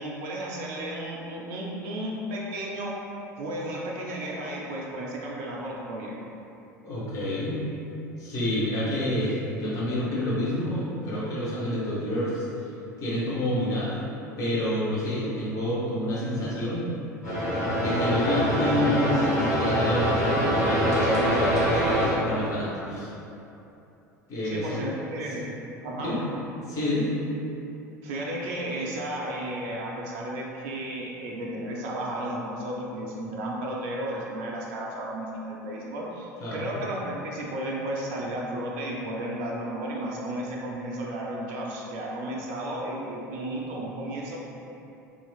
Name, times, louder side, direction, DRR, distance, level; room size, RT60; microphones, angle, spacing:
voice 1, 0.0-3.0 3.4-6.1 24.4-25.5 25.8-26.1 28.0-44.4, right 1 dB, 55° right, -3 dB, 0.4 m, -33 dB
voice 2, 6.8-7.6 8.2-12.4 13.0-14.0 14.4-16.9 17.7-23.1 24.3-24.8 25.9-26.2 26.7-27.1 36.4-36.7, left 1 dB, 40° left, -8 dB, 0.8 m, -28 dB
sound 1, 17.2-22.1, equal, 70° left, 0.8 m, -24 dB
2.9 x 2.4 x 2.3 m, 2.9 s
figure-of-eight pair, 70°, 9 cm